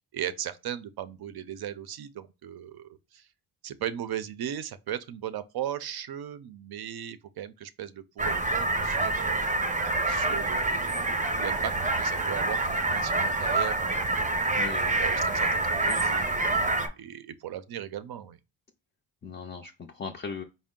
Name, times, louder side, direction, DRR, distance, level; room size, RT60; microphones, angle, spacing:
voice 1, 0.1-3.3 3.6-9.5 10.1-11.7 12.0-14.1 14.7-16.5 17.0-18.4, right 10 dB, 60° right, 0.5 m, -37 dB
sound 1, 8.2-16.9, right 2 dB, 20° right, 0.7 m, -27 dB
voice 2, 14.6-15.1 19.2-20.4, left 5 dB, 25° left, 0.4 m, -38 dB
4.3 x 2.1 x 3.6 m
cardioid pair, 105°, 44 cm